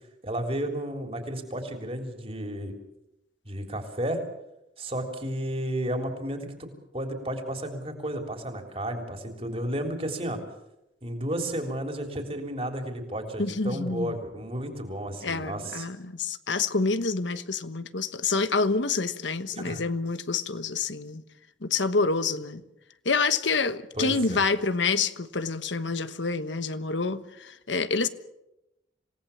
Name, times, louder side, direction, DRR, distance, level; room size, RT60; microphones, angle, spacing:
voice 1, 0.2-2.8 3.5-4.2 4.8-6.7 6.9-10.4 11.0-15.9 19.5-19.8 24.0-24.4, right 1 dB, 30° right, 4 dB, 3.5 m, -32 dB
voice 2, 13.4-14.1 15.2-21.2 21.6-22.6 23.0-28.1, left 4 dB, 80° left, 11 dB, 1.2 m, -27 dB
27.0 x 18.0 x 7.2 m, 0.91 s
head